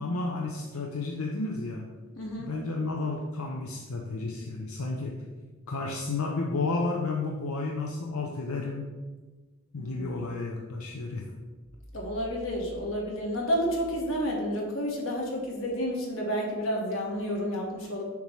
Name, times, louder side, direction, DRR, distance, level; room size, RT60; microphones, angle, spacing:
voice 1, 0.0-1.9 2.4-5.2 5.7-8.9 9.7-11.3, left 3 dB, 90° left, 0 dB, 0.7 m, -32 dB
voice 2, 2.1-2.5 9.8-10.1 11.9-18.0, equal, 65° left, -1 dB, 1.6 m, -30 dB
7.1 x 3.1 x 5.7 m, 1.3 s
head